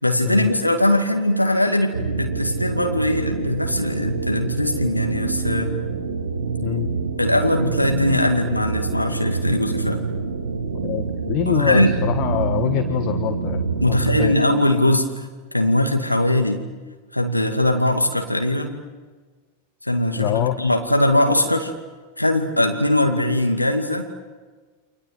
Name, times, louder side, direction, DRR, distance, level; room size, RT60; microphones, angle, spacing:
voice 1, 0.0-5.7 7.2-10.0 11.5-12.0 13.8-15.3 15.5-16.6 17.1-18.8 19.8-21.7 22.2-24.1, left 1 dB, 85° left, 4 dB, 2.3 m, -20 dB
sound 1, 1.9-14.3, right 4 dB, 75° right, 1.8 m, -26 dB
voice 2, 10.7-14.4 20.2-20.6, left 11 dB, 40° left, 8 dB, 1.6 m, -25 dB
29.5 x 25.5 x 7.9 m, 1.4 s
figure-of-eight pair, 90°, 0 cm